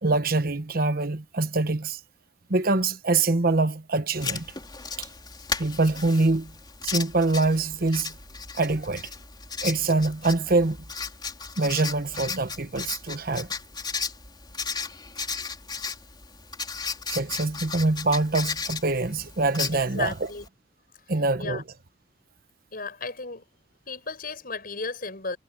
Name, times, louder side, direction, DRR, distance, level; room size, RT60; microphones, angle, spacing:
voice 1, 0.0-2.0 2.5-4.5 5.0-5.1 5.6-6.5 6.8-8.1 8.6-9.1 9.6-10.8 11.6-13.5 17.1-20.1 21.1-21.6, right 3 dB, 55° right, 1.2 m, -24 dB
Writing, 4.1-20.5, left 5 dB, 25° left, 3.6 m, -35 dB
voice 2, 19.7-20.4 21.4-21.6 22.7-23.4 23.9-25.4, left 4 dB, 55° left, 6.8 m, -34 dB
head